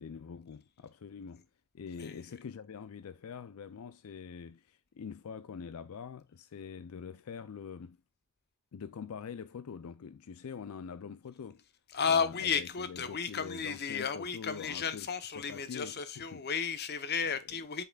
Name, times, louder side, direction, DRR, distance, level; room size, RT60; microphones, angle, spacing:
voice 1, 0.0-1.5 1.7-8.0 8.7-11.6 12.1-16.5, left 6 dB, 75° left, 0.4 m, -45 dB
voice 2, 11.9-17.8, left 6 dB, 45° left, 0.9 m, -33 dB
8.5 x 5.8 x 2.3 m
head